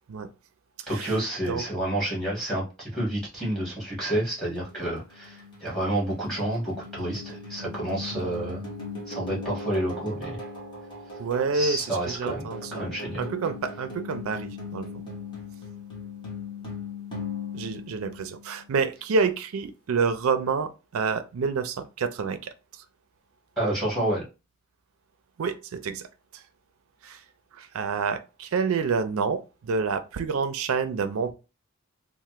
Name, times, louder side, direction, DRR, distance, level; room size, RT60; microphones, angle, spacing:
voice 1, 0.9-8.6 9.1-10.4 11.5-12.4 12.7-13.3 23.6-24.2, right 1 dB, ahead, 1.4 m, -29 dB
sound 1, 4.6-18.7, left 3 dB, 20° left, 1.1 m, -39 dB
voice 2, 8.1-8.5 11.2-15.0 17.5-22.5 25.4-26.1 26.3-26.4 27.0-27.2 27.5-31.3, right 5 dB, 70° right, 0.4 m, -28 dB
3.2 x 2.1 x 2.9 m
head